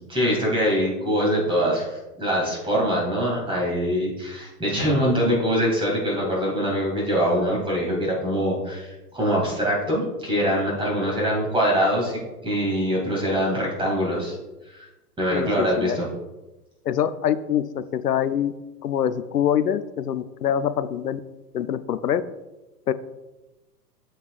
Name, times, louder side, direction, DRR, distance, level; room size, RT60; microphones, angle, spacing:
voice 1, 0.1-14.4 14.7-14.8 15.2-16.1, equal, 10° right, -4 dB, 2.4 m, -23 dB
voice 2, 16.9-17.7 17.9-18.5 18.8-21.2 21.5-22.2 22.9-23.0, left 9 dB, 75° left, 13 dB, 0.6 m, -24 dB
12.5 x 4.6 x 2.4 m, 1.0 s
figure-of-eight pair, 110°, 48 cm